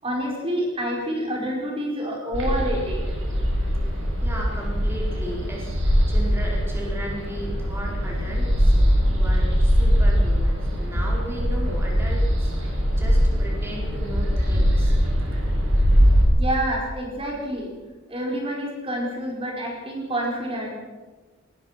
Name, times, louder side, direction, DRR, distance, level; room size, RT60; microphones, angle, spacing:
voice 1, 0.0-3.0 16.4-17.7 18.1-20.7, right 1 dB, 30° right, -1 dB, 5.0 m, -28 dB
sound 1, 2.3-16.2, equal, 70° right, 7.3 m, -21 dB
voice 2, 4.2-8.7 9.2-14.9, equal, 10° right, -3 dB, 4.9 m, -36 dB
21.0 x 20.5 x 6.0 m, 1.3 s
head